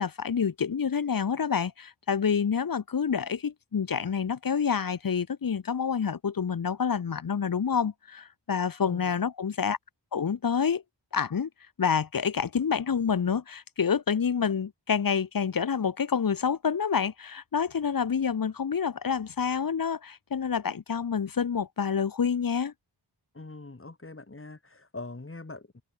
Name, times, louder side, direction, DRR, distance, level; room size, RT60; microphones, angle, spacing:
voice 1, 0.0-9.8 10.1-10.8 11.1-11.5 11.8-22.7, left 6 dB, 50° left, 0.8 m, -28 dB
voice 2, 23.3-25.8, left 2 dB, 30° left, 2.3 m, -43 dB
wide cardioid pair, 60°, 44 cm